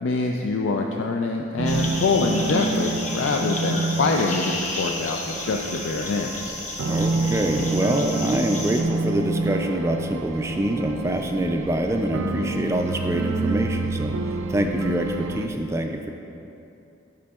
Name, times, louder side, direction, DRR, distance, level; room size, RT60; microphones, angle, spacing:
voice 1, 0.0-6.6, left 3 dB, 80° left, 1 dB, 0.4 m, -25 dB
sound 1, 1.6-15.5, right 3 dB, 90° right, 0.4 m, -28 dB
sound 2, 1.7-8.8, left 2 dB, 40° left, 0.8 m, -33 dB
voice 2, 6.9-16.1, right 1 dB, 15° right, 4 dB, 0.3 m, -25 dB
11.5 x 5.1 x 2.3 m, 2.8 s
head